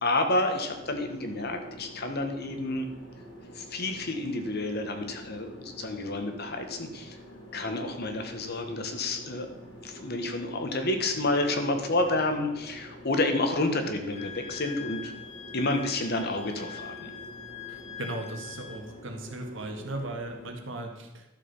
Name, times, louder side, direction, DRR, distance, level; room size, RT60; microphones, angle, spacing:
voice 1, 0.0-2.8 3.5-7.2 7.5-9.5 9.8-15.1 15.5-17.1, left 2 dB, 55° left, 6 dB, 1.5 m, -29 dB
sound 1, 0.6-20.5, equal, 80° left, 3.3 m, -47 dB
Wind instrument woodwind instrument, 14.1-18.9, left 8 dB, 35° left, 1.0 m, -43 dB
voice 2, 17.7-21.2, right 2 dB, 70° right, 4 dB, 1.8 m, -37 dB
12.0 x 6.8 x 5.5 m, 1.0 s
head